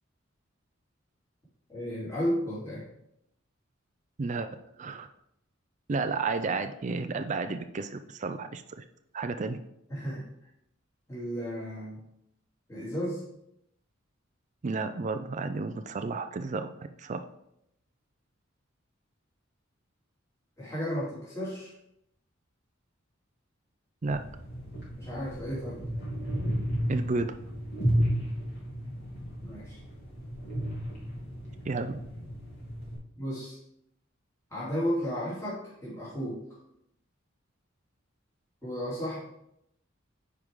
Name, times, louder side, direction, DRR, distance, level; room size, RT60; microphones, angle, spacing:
voice 1, 1.7-2.8 9.9-10.2 11.1-12.0 12.7-13.2 20.6-21.7 25.0-25.8 29.4-29.8 33.2-33.6 34.5-36.4 38.6-39.2, equal, 15° left, -10 dB, 3.0 m, -33 dB
voice 2, 4.2-4.5 4.8-5.1 5.9-8.8 9.1-9.6 14.6-16.7 17.0-17.2 24.0-24.2 26.9-27.4 31.7-32.0, right 3 dB, 35° right, 8 dB, 0.4 m, -32 dB
sound 1, 24.0-33.0, equal, 55° left, 3.4 m, -33 dB
9.8 x 4.8 x 3.7 m, 0.78 s
head